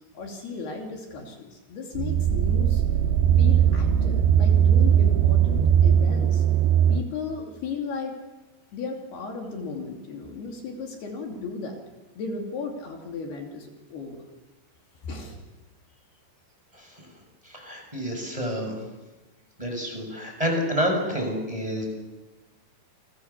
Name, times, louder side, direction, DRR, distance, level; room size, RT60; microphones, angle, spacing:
voice 1, 0.1-2.8 3.4-6.4 6.9-8.2 8.7-11.8 12.2-14.3 15.0-15.4, left 4 dB, 65° left, 2 dB, 4.6 m, -35 dB
sound 1, 2.0-7.0, right 9 dB, 80° right, 3.2 m, -19 dB
voice 2, 16.7-17.1 17.4-18.7 19.6-21.8, equal, 5° right, 3 dB, 6.3 m, -28 dB
29.5 x 22.5 x 7.1 m, 1.1 s
omnidirectional pair, 5.1 m